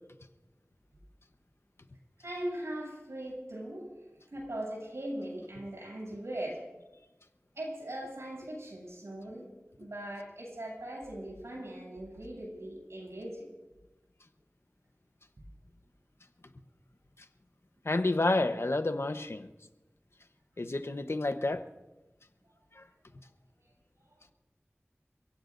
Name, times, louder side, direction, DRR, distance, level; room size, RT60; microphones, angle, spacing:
voice 1, 2.2-3.9 4.3-6.6 7.6-9.5 9.8-13.4, right 1 dB, 90° right, 7.8 m, -40 dB
voice 2, 17.8-19.5 20.6-21.6, left 2 dB, 65° left, 1.0 m, -29 dB
29.5 x 16.5 x 2.6 m
wide cardioid pair, 45°, 5 cm